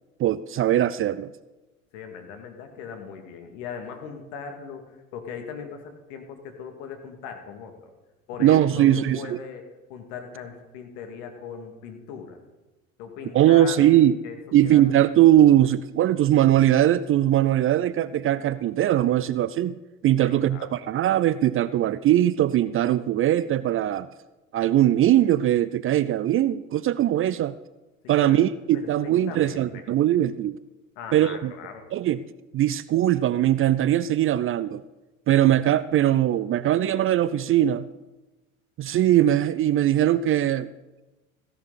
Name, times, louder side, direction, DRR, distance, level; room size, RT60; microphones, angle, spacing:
voice 1, 0.2-1.3 8.4-9.4 13.3-14.2 14.5-19.7 20.0-24.1 24.5-27.6 28.1-30.6 31.1-31.5 31.9-32.2 32.5-34.8 35.3-37.9 38.8-40.7, right 12 dB, 35° right, 17 dB, 0.4 m, -20 dB
voice 2, 1.9-7.9 8.3-12.4 13.0-14.8 20.2-20.8 28.2-28.4 28.7-29.8 31.0-31.9, left 6 dB, 65° left, 5 dB, 2.2 m, -39 dB
15.5 x 11.0 x 4.1 m, 1.1 s
hypercardioid pair, 65°, 41 cm